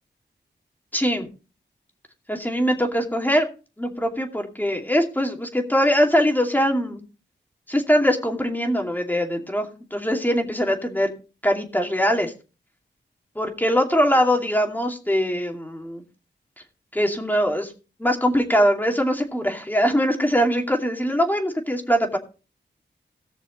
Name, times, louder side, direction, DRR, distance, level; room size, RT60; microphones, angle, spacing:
voice 1, 0.9-1.3 2.3-3.5 3.8-7.0 7.7-11.1 11.4-12.3 13.4-16.0 16.9-17.7 18.0-22.2, equal, 10° left, 2 dB, 2.6 m, -22 dB
18.0 x 6.6 x 3.9 m, 0.34 s
cardioid pair, 65°, 19 cm